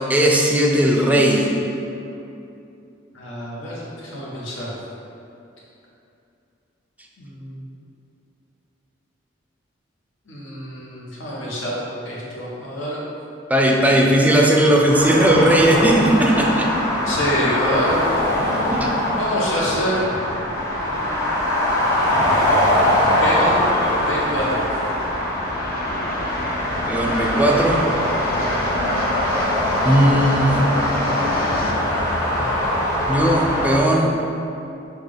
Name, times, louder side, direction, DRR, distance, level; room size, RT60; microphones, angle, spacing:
voice 1, 0.0-1.5 13.5-16.7 18.7-19.0 26.9-27.9 29.8-30.7 33.1-34.1, right 1 dB, 10° right, 0 dB, 0.4 m, -17 dB
voice 2, 3.1-4.7 7.2-7.6 10.3-13.0 17.0-18.0 19.2-20.1 20.8-21.2 23.2-24.7, equal, 75° left, -5 dB, 1.0 m, -26 dB
sound 1, 14.9-33.8, left 1 dB, 15° left, 0.7 m, -22 dB
sound 2, 21.6-31.7, left 2 dB, 50° left, 0.4 m, -32 dB
5.8 x 2.3 x 3.4 m, 2.7 s
head